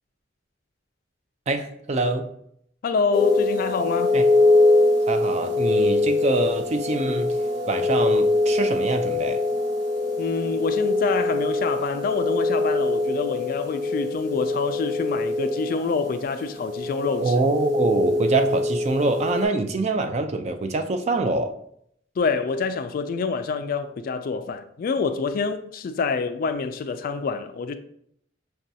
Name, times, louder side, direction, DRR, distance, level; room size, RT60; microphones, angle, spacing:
voice 1, 1.5-2.3 4.1-4.2 5.1-7.4 7.7-9.4 17.2-21.5, right 3 dB, 35° right, 0.4 m, -24 dB
voice 2, 2.8-4.2 10.2-17.3 22.2-27.7, left 4 dB, 50° left, 0.3 m, -26 dB
sound 1, 3.1-19.5, left 2 dB, 65° right, 1.1 m, -23 dB
6.0 x 2.3 x 2.7 m
head